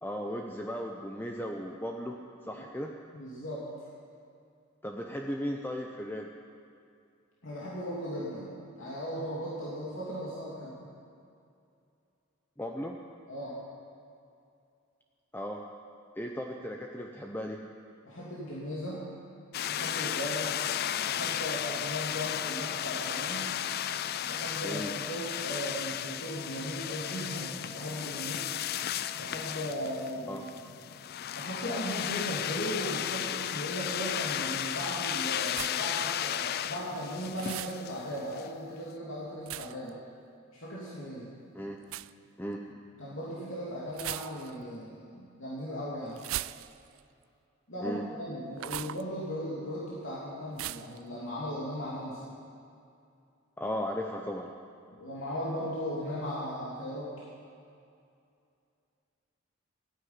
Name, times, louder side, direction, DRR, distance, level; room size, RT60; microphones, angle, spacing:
voice 1, 0.0-2.2 2.4-2.9 4.8-6.3 12.6-13.0 15.3-15.6 16.2-17.6 24.6-24.9 30.3-30.4 41.5-41.8 42.4-42.6 47.8-48.0 53.6-54.5, equal, 10° left, 1 dB, 0.8 m, -36 dB
voice 2, 3.1-3.7 7.4-10.9 13.3-13.6 18.1-19.1 19.7-20.6 21.1-23.6 24.2-28.4 29.2-30.7 31.3-40.0 40.5-41.3 43.0-46.2 47.7-52.3 54.9-57.2, equal, 75° left, -7 dB, 2.8 m, -37 dB
sound 1, 19.5-38.5, left 10 dB, 50° left, 0.4 m, -34 dB
sound 2, 20.6-30.6, equal, 5° right, 2.4 m, -53 dB
sound 3, 35.5-36.0 37.3-37.8 39.5-39.9 41.8-42.1 43.9-44.6 46.2-47.0 48.6-49.0 50.6-51.0, right 14 dB, 85° right, 0.4 m, -38 dB
14.5 x 9.8 x 9.6 m, 2.5 s
head